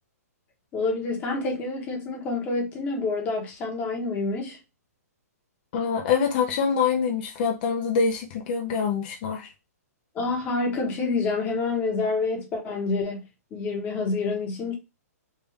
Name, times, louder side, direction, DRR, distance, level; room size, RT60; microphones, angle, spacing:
voice 1, 0.7-4.6 10.1-13.2 13.5-14.7, left 3 dB, 20° left, 1.0 m, -27 dB
voice 2, 5.7-9.5, left 6 dB, 35° left, 0.5 m, -25 dB
3.3 x 2.4 x 3.4 m
hypercardioid pair, 160°, 9 cm